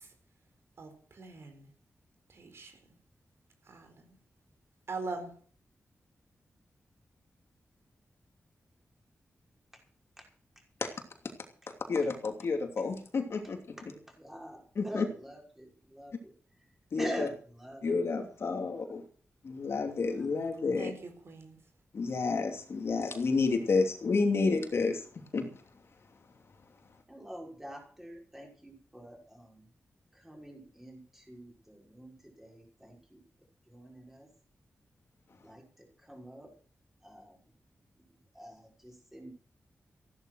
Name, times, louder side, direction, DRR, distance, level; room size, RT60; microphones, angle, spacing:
voice 1, 0.8-1.7 2.3-2.7 3.7-4.0 4.9-5.4 20.8-21.6, right 3 dB, 60° right, 4.3 m, -42 dB
voice 2, 11.9-13.6 14.7-15.0 16.9-17.3 17.8-19.0 19.4-20.9 21.9-25.0 25.3-25.5, left 4 dB, 60° left, 2.9 m, -30 dB
voice 3, 13.9-16.3 17.0-17.8 27.1-29.6 30.2-33.2 33.7-34.3 35.4-35.6 36.1-36.5 37.0-37.4 38.3-39.3, equal, 5° right, 5.8 m, -45 dB
15.5 x 12.0 x 6.3 m
wide cardioid pair, 140°, 5 cm